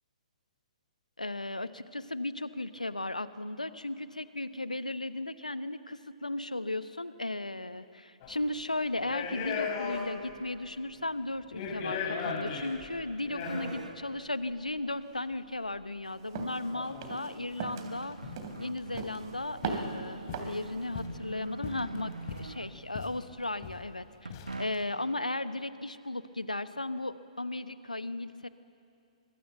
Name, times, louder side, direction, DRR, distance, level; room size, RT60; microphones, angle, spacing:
voice 1, 1.2-18.2 18.6-24.3 24.6-28.5, left 2 dB, 85° left, 13 dB, 1.0 m, -36 dB
sound 1, 8.2-8.4 9.0-10.4 10.7-10.8 11.4-14.0 14.9-15.0 16.7-17.2 17.7-17.8 18.0-18.5 18.8-19.2 19.6-19.9 20.3-21.2 21.6-22.6 23.0-23.2 23.4-23.9 24.3-24.8, left 6 dB, 35° left, 3.5 m, -38 dB
sound 2, 12.2-12.9 13.2-14.0 14.7-14.8 16.8-16.9 17.2-23.0 24.3-25.1, right 3 dB, 75° right, 1.3 m, -45 dB
sound 3, 16.4-16.6 17.0-17.3 17.6-17.9 18.4-18.7 19.0-19.3 19.6-20.0 20.3-20.7, right 5 dB, 40° right, 3.0 m, -37 dB
24.5 x 22.0 x 8.0 m, 2.6 s
figure-of-eight pair, 125°, 4 cm